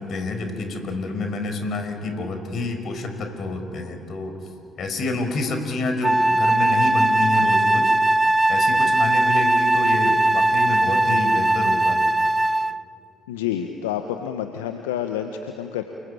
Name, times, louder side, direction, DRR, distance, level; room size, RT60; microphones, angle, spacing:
voice 1, 0.0-4.4 4.8-7.9 8.5-12.0, left 3 dB, 50° left, 7 dB, 5.3 m, -28 dB
Wind instrument woodwind instrument, 6.0-12.8, right 2 dB, 15° right, 0.6 m, -19 dB
voice 2, 13.3-15.8, left 10 dB, 75° left, 6 dB, 1.3 m, -28 dB
29.5 x 21.5 x 8.9 m, 2.6 s
figure-of-eight pair, 50°, 0 cm